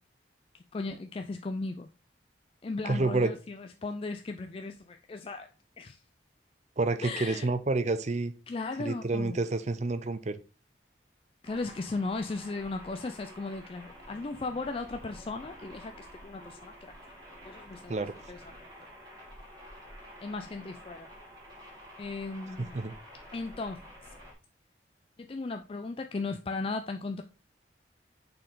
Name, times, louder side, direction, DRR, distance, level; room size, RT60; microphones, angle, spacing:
voice 1, 0.5-1.9 2.6-5.5 5.8-6.0 7.0-7.5 8.5-9.4 11.4-17.1 17.4-17.9 18.3-18.4 18.8-18.9 20.2-21.1 22.0-22.7 23.3-23.8 25.2-27.2, left 3 dB, 30° left, 0.4 m, -36 dB
voice 2, 2.9-3.3 6.8-8.3 8.8-10.4 17.9-18.1 22.7-22.9, right 3 dB, 40° right, 0.6 m, -29 dB
sound 1, 11.4-24.3, equal, 20° right, 2.5 m, -50 dB
6.4 x 4.3 x 3.8 m
head